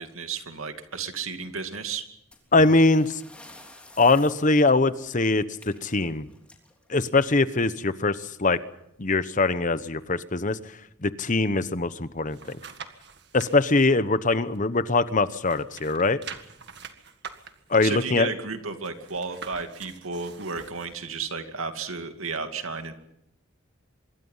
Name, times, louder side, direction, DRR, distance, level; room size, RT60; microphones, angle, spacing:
voice 1, 0.0-2.0 17.8-22.9, right 4 dB, 80° right, 7 dB, 2.6 m, -33 dB
sound 1, 2.3-7.7 8.9-9.1 9.4-9.5 10.2-10.3 10.9-11.2, left 1 dB, 5° left, 3.4 m, -51 dB
voice 2, 2.5-3.2 4.0-6.3 6.9-8.6 9.0-10.6 11.0-12.6 13.3-16.2 17.7-18.3, left 3 dB, 35° left, 13 dB, 1.0 m, -22 dB
sound 2, 11.9-13.5 14.0-15.1 15.4-21.0 21.4-21.5, right 6 dB, 55° right, 1.9 m, -44 dB
25.5 x 22.5 x 5.7 m, 0.78 s
head